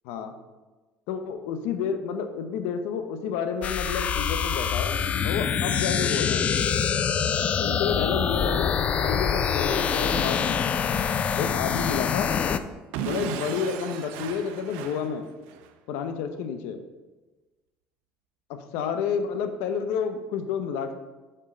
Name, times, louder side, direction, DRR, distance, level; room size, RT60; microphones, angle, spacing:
voice 1, 1.1-5.0 5.2-6.5 7.4-10.7 11.4-12.3 13.0-15.3 15.9-16.8 18.5-20.9, left 7 dB, 80° left, 8 dB, 0.7 m, -30 dB
sound 1, 3.6-12.6, left 7 dB, 35° left, 0.4 m, -25 dB
Explosion / Shatter, 12.9-15.7, right 8 dB, 80° right, 0.6 m, -35 dB
7.3 x 4.5 x 5.1 m, 1.2 s
cardioid pair, 130°, 4 cm